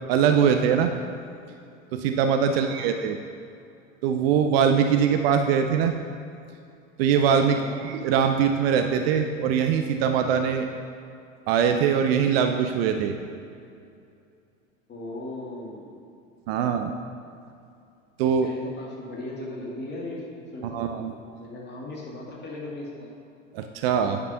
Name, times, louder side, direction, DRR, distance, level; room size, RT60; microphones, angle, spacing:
voice 1, 0.1-0.9 1.9-3.2 4.0-6.0 7.0-10.7 11.5-13.2 16.5-16.9 18.2-18.5 20.7-21.1 23.5-24.2, right 7 dB, 45° right, 6 dB, 0.7 m, -22 dB
voice 2, 2.5-3.0 7.5-7.8 14.9-16.0 18.4-20.2 20.5-20.8 21.4-23.1, left 2 dB, 25° left, -3 dB, 2.4 m, -37 dB
9.2 x 6.1 x 5.6 m, 2.5 s
figure-of-eight pair, 85°, 40 cm